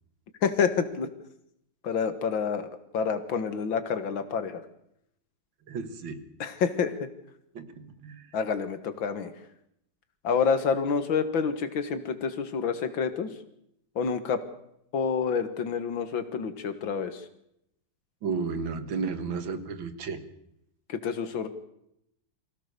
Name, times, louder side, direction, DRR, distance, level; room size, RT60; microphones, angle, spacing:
voice 1, 0.4-1.1 1.8-4.6 6.4-7.1 8.3-9.3 10.2-13.3 14.0-14.4 14.9-17.3 20.9-21.5, left 6 dB, 90° left, 10 dB, 2.3 m, -28 dB
voice 2, 5.7-6.3 7.5-8.3 18.2-20.2, right 5 dB, 90° right, 10 dB, 2.4 m, -33 dB
24.0 x 16.5 x 6.8 m, 0.77 s
omnidirectional pair, 2.1 m